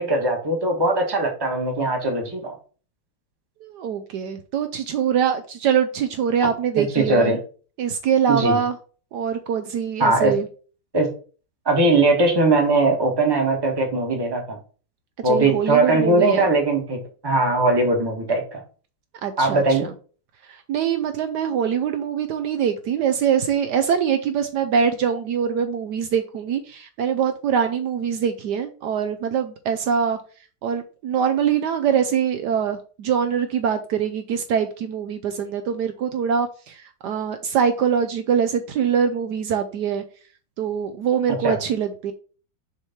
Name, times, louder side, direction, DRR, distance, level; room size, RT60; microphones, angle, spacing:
voice 1, 0.0-2.6 6.8-7.4 8.3-8.6 10.0-10.3 10.9-11.1 11.6-14.6 15.2-18.6 19.4-19.9 41.3-41.6, right 2 dB, 15° right, 2 dB, 1.2 m, -20 dB
voice 2, 3.6-7.4 7.8-8.7 9.1-10.5 15.2-16.5 19.2-19.8 20.5-30.2 30.6-40.0 40.6-42.1, right 7 dB, 70° right, 8 dB, 1.1 m, -23 dB
6.5 x 3.1 x 5.7 m, 0.39 s
omnidirectional pair, 2.0 m